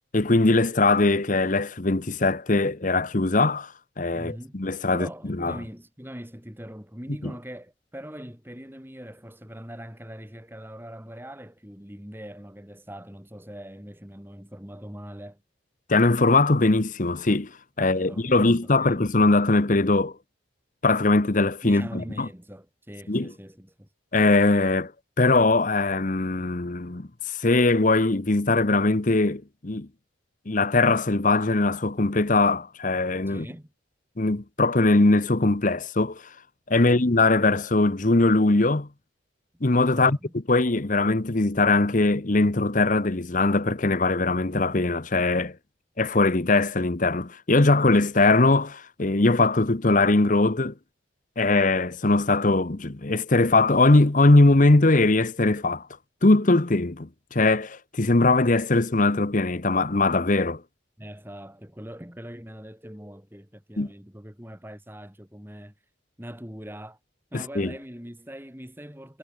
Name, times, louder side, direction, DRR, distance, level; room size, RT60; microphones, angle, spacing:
voice 1, 0.1-5.1 5.4-5.6 7.2-7.3 15.9-17.5 17.8-20.1 20.8-22.3 23.1-23.3 24.1-24.9 25.2-29.9 30.5-33.5 34.2-36.2 36.7-38.9 39.6-40.2 40.5-45.6 46.0-50.7 51.4-55.9 56.2-60.6 63.8-63.9 67.3-67.7, left 2 dB, 40° left, 1.0 m, -21 dB
voice 2, 4.1-4.6 4.9-15.4 17.8-18.5 18.8-19.0 21.6-23.9 33.3-33.7 36.8-37.0 39.9-40.3 61.0-65.7 66.2-67.0 67.3-69.2, equal, 10° right, 3.4 m, -42 dB
head